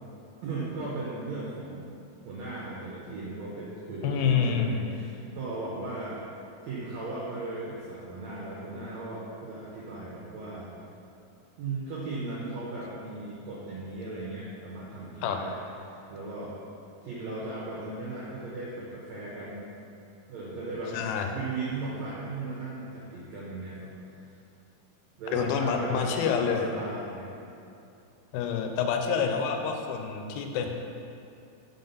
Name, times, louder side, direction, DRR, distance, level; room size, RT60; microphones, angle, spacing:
voice 1, 0.4-1.9 2.2-6.2 6.6-10.7 11.6-15.5 15.8-16.5 17.0-19.7 20.3-23.9 25.2-27.3, right 2 dB, 90° right, -6 dB, 1.5 m, -37 dB
voice 2, 4.0-4.8 15.2-15.4 20.9-21.3 25.3-26.7 28.3-30.7, left 6 dB, 85° left, 4 dB, 2.3 m, -27 dB
5.6 x 3.8 x 5.4 m, 2.6 s
omnidirectional pair, 4.2 m